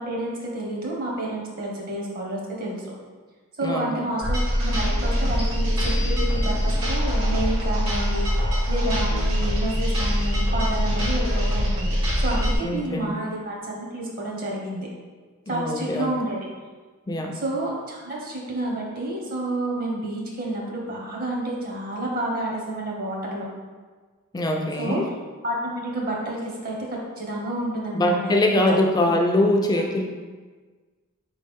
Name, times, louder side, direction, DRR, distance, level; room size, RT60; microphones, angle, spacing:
voice 1, 0.0-2.8 3.6-14.9 15.5-16.4 17.3-23.5 24.8-25.0 25.4-28.6 28.9-29.1 29.7-29.8, right 1 dB, 40° right, -2 dB, 1.0 m, -30 dB
voice 2, 3.6-4.1 12.6-13.1 15.5-16.1 17.1-17.4 24.3-25.1 27.9-30.0, left 1 dB, 20° left, 1 dB, 0.4 m, -23 dB
sound 1, 4.2-12.5, equal, 70° right, 1.3 m, -23 dB
4.8 x 3.1 x 3.5 m, 1.4 s
head